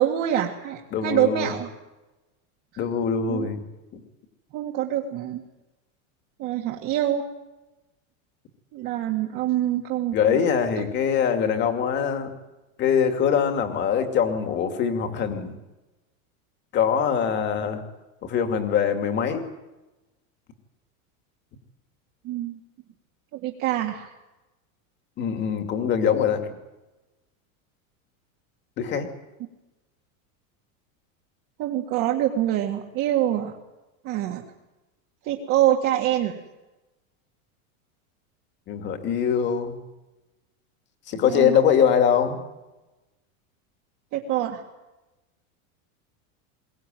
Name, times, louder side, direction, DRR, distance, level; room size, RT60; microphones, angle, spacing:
voice 1, 0.0-1.7 3.3-3.5 4.5-5.4 6.4-7.2 8.7-10.4 10.8-10.9 22.2-22.6 23.3-24.1 31.6-33.6 34.0-34.4 35.2-36.4 41.2-41.6 44.1-44.6, right 12 dB, 35° right, 1 dB, 1.9 m, -25 dB
voice 2, 0.9-1.5 2.8-3.6 3.9-4.0 10.1-12.3 12.8-15.5 16.7-17.8 18.2-19.4 25.2-26.5 28.8-29.1 38.7-39.8 41.1-42.4, left 7 dB, 25° left, 6 dB, 2.5 m, -23 dB
22.0 x 19.5 x 9.1 m, 1.0 s
supercardioid pair, 175°, 41 cm